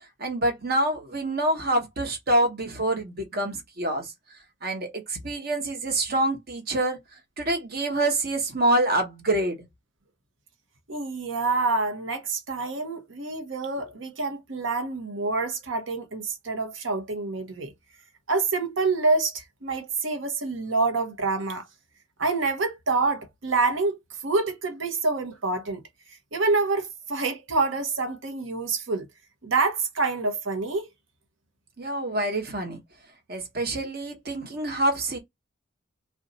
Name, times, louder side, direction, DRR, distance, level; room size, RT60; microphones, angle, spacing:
voice 1, 0.2-4.1 4.6-7.0 7.4-9.6 31.8-32.8 33.3-35.2, right 1 dB, 50° right, 1.0 m, -26 dB
voice 2, 10.9-17.7 18.3-21.6 22.2-24.0 24.2-25.8 26.3-29.1 29.4-30.9, right 3 dB, 80° right, 0.8 m, -27 dB
2.5 x 2.2 x 3.9 m
head